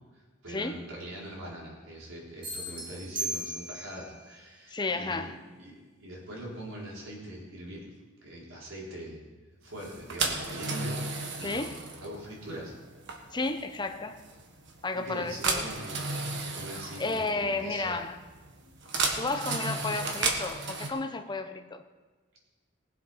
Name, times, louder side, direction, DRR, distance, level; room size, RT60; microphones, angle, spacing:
voice 1, 0.1-5.3 5.6-7.9 8.2-9.3 9.6-11.7 12.0-12.7 14.9-18.0, right 1 dB, 85° right, 4.3 m, -42 dB
sound 1, 2.4-4.1, right 1 dB, 25° right, 2.2 m, -36 dB
voice 2, 4.7-5.3 11.4-11.8 13.3-14.2 14.8-15.7 17.0-18.2 19.2-21.8, left 3 dB, 20° left, 0.8 m, -32 dB
sound 2, 9.8-20.9, right 3 dB, 65° right, 1.6 m, -34 dB
19.0 x 7.8 x 5.7 m
head